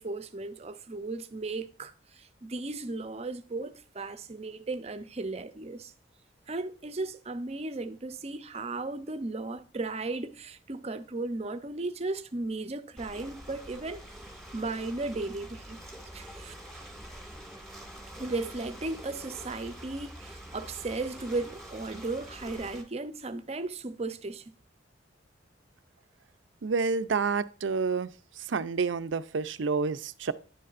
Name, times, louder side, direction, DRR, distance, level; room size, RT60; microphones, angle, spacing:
voice 1, 0.0-5.9 6.5-14.0 14.5-15.8 16.1-16.5 18.2-24.5, right 3 dB, 35° right, 0.6 m, -35 dB
Ocean, 13.0-22.8, right 1 dB, ahead, 2.0 m, -46 dB
voice 2, 26.6-28.1 28.4-30.3, right 5 dB, 90° right, 0.5 m, -29 dB
10.5 x 6.8 x 2.5 m
head